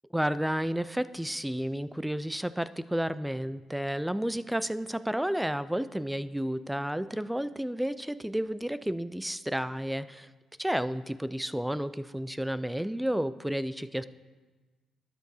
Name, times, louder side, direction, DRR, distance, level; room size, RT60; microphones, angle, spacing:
voice 1, 0.1-10.3 10.6-14.0, equal, 5° right, 14 dB, 0.3 m, -31 dB
13.0 x 9.3 x 2.7 m, 1.3 s
cardioid pair, 90°, 0 cm